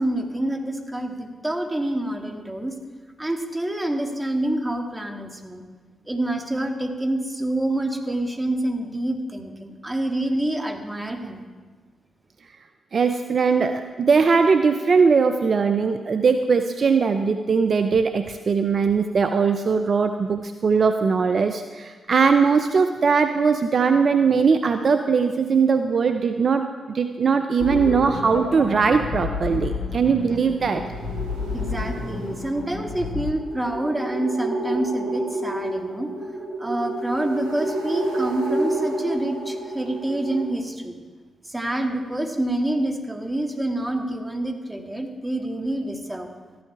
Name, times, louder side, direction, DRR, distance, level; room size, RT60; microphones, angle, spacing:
voice 1, 0.0-2.7 3.2-5.6 6.1-11.5 31.5-36.1 36.6-41.0 41.4-46.3, right 1 dB, 20° right, 4 dB, 2.0 m, -27 dB
voice 2, 12.9-30.8, right 5 dB, 55° right, 8 dB, 0.6 m, -20 dB
sound 1, 27.6-33.3, left 4 dB, 60° left, 2.3 m, -30 dB
sound 2, 30.6-40.4, right 2 dB, 90° right, 2.3 m, -30 dB
13.5 x 11.0 x 4.7 m, 1.4 s
hypercardioid pair, 40°, 0 cm